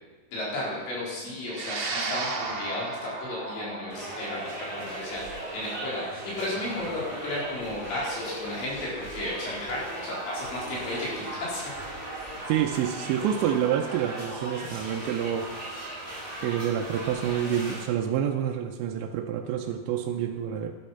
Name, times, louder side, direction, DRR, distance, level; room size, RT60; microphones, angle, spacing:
voice 1, 0.3-11.7, left 1 dB, 70° left, -6 dB, 6.6 m, -34 dB
sound 1, 1.5-10.0, right 3 dB, 55° right, 2.7 m, -37 dB
sound 2, 3.9-17.8, right 1 dB, 10° left, 4.2 m, -38 dB
voice 2, 12.5-16.0 16.4-20.7, right 9 dB, 90° right, 2 dB, 2.9 m, -28 dB
12.0 x 12.0 x 5.7 m, 1.3 s
omnidirectional pair, 5.2 m